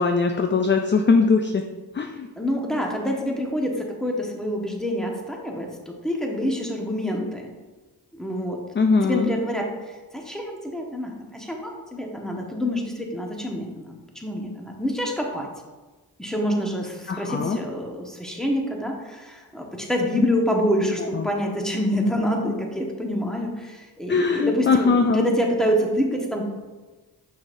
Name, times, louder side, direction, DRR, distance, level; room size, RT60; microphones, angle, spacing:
voice 1, 0.0-1.7 1.9-2.3 8.7-9.3 17.1-17.6 21.0-21.3 24.1-25.3, left 4 dB, 30° left, 5 dB, 0.5 m, -21 dB
voice 2, 2.4-7.5 8.1-8.6 9.0-15.5 16.2-26.5, equal, ahead, 0 dB, 1.3 m, -26 dB
6.2 x 5.8 x 2.6 m, 1.2 s
cardioid pair, 50°, 41 cm